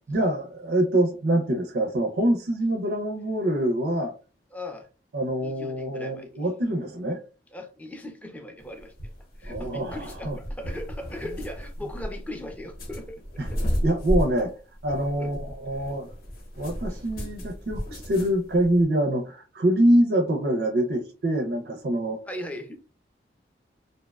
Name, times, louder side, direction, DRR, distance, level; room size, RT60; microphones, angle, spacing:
voice 1, 0.1-4.1 5.1-7.2 9.5-10.4 13.4-13.5 13.8-14.5 14.8-16.1 16.6-22.2, right 1 dB, 60° right, 0.4 m, -25 dB
voice 2, 4.5-4.9 5.4-6.3 7.5-8.9 9.4-13.2 13.5-13.6 15.2-15.3 16.9-17.0 22.3-22.9, left 1 dB, 10° left, 0.4 m, -39 dB
sound 1, 8.6-18.8, equal, 55° left, 0.7 m, -33 dB
2.6 x 2.1 x 2.3 m
head